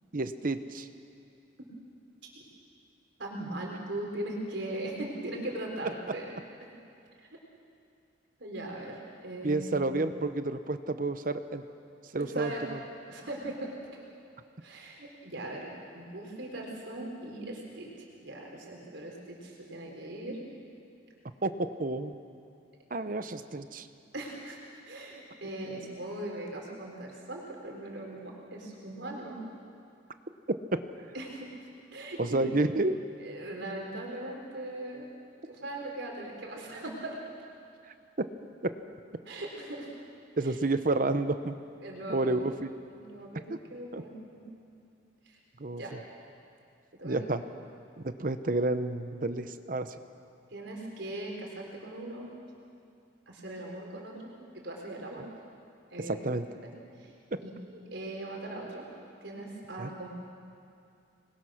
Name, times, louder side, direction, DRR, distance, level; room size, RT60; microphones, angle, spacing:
voice 1, 0.1-0.9 9.4-11.6 12.1-12.8 21.4-22.2 22.9-23.9 32.2-32.9 38.6-38.7 40.4-41.5 42.1-42.7 43.9-44.0 45.6-45.8 47.0-47.4 48.0-49.9 56.1-56.4 59.8-59.9, right 2 dB, 45° right, 10 dB, 0.8 m, -30 dB
voice 2, 3.2-6.3 7.2-7.3 8.4-10.0 12.2-12.6 13.1-13.8 14.6-20.4 24.1-29.4 31.1-31.5 31.9-32.4 33.2-35.1 35.5-37.2 39.3-39.9 40.4-40.6 41.8-42.5 42.9-43.4 43.7-44.4 45.3-45.4 45.7-46.0 47.0-47.2 50.5-52.3 53.3-55.3 55.9-56.4 57.0-57.1 57.4-58.9 59.2-60.1, right 1 dB, 75° right, -1 dB, 4.1 m, -40 dB
26.5 x 21.5 x 6.4 m, 2.5 s
head